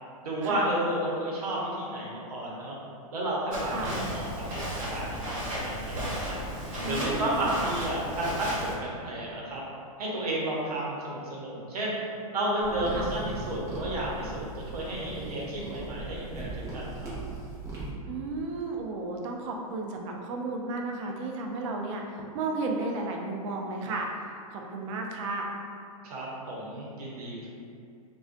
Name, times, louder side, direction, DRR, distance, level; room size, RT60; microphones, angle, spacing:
voice 1, 0.2-2.8 3.1-6.4 6.8-9.6 10.0-12.0 12.3-17.1 26.0-27.5, right 1 dB, 80° right, -5 dB, 0.8 m, -32 dB
Walk footsteps, 3.5-8.7, equal, 35° right, 1.3 m, -34 dB
voice 2, 3.6-4.0 6.8-7.8 12.9-13.1 18.1-24.1 24.5-25.6, right 2 dB, 55° right, 1 dB, 0.4 m, -33 dB
sound 1, 12.6-17.9, right 3 dB, 15° right, 0.7 m, -38 dB
2.3 x 2.2 x 2.4 m, 2.4 s
hypercardioid pair, 125°, 19 cm